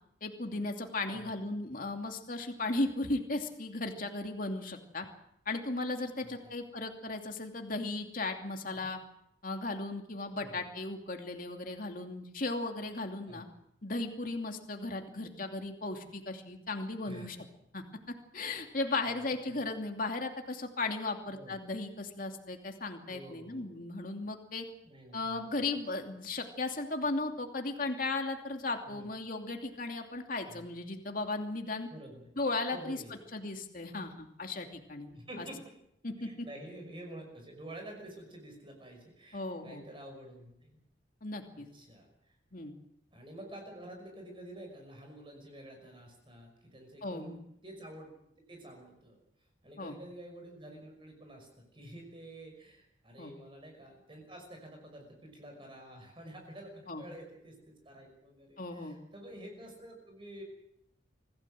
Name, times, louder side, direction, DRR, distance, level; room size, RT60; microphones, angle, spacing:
voice 1, 0.2-5.1 5.5-9.0 9.4-13.5 13.8-17.4 17.7-24.6 25.1-31.9 32.4-33.0 33.3-35.5 36.0-36.5 39.3-39.8 41.2-41.7 42.5-42.7 47.0-47.4 49.8-49.9 53.2-53.3 56.9-57.0 58.6-59.0, left 2 dB, 45° left, 4 dB, 2.7 m, -36 dB
voice 2, 6.2-6.5 8.7-8.9 10.3-10.6 13.3-13.4 17.1-17.4 19.0-19.2 19.5-19.7 21.3-21.8 23.1-23.8 24.8-25.6 28.9-29.1 30.5-30.7 31.9-32.3 32.7-33.2 35.1-35.6 36.2-40.8 41.5-42.4 43.1-48.1 48.5-49.2 49.6-60.4, right 1 dB, 25° right, 3 dB, 5.7 m, -49 dB
25.5 x 16.5 x 7.7 m, 0.77 s
head